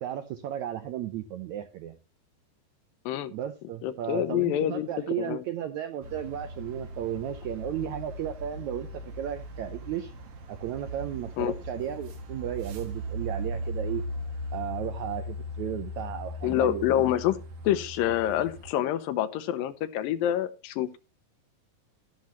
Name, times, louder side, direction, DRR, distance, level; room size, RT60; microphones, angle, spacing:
voice 1, 0.0-2.0 3.3-10.1 10.5-14.0 14.5-17.1, right 11 dB, 80° right, 8 dB, 1.7 m, -34 dB
voice 2, 3.8-4.9 5.2-5.4 11.4-11.5 16.4-17.4 17.6-21.0, left 11 dB, 80° left, 13 dB, 2.4 m, -27 dB
sound 1, 6.0-18.7, equal, 60° right, 2.9 m, -38 dB
12.0 x 11.5 x 3.0 m, 0.29 s
omnidirectional pair, 4.2 m